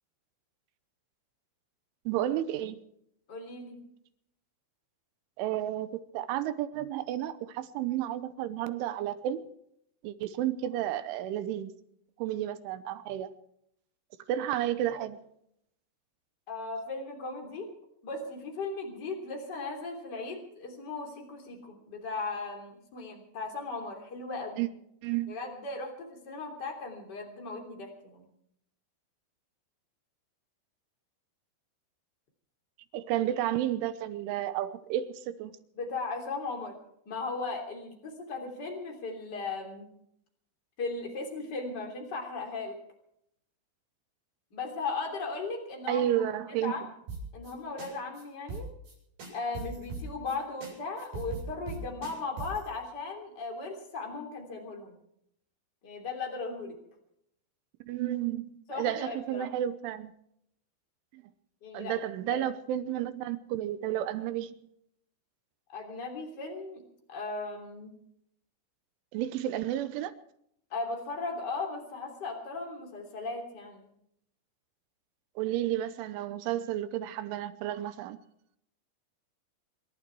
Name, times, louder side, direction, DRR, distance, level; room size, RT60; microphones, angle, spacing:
voice 1, 2.1-2.8 5.4-9.4 10.0-11.7 12.2-13.3 14.3-15.2 24.6-24.7 25.0-25.4 32.9-35.6 45.9-46.9 57.9-60.1 61.1-61.2 61.7-64.5 69.1-70.1 75.4-78.2, right 12 dB, 80° right, 3.2 m, -32 dB
voice 2, 3.3-3.8 12.2-12.4 16.5-17.7 18.0-24.7 25.3-28.3 35.7-36.8 37.0-39.8 40.8-42.7 44.5-46.0 46.6-46.8 47.3-48.7 49.3-55.0 55.8-56.8 58.7-59.5 61.6-62.0 62.3-62.4 65.7-66.8 67.1-67.9 70.7-73.9, left 3 dB, 25° left, 2.9 m, -37 dB
sound 1, 47.1-47.5 47.8-47.9 48.2-48.3 48.5-48.9 49.2-50.4 50.6-50.7 51.0-52.7, right 4 dB, 55° right, 9.4 m, -39 dB
27.0 x 11.5 x 4.6 m
omnidirectional pair, 5.7 m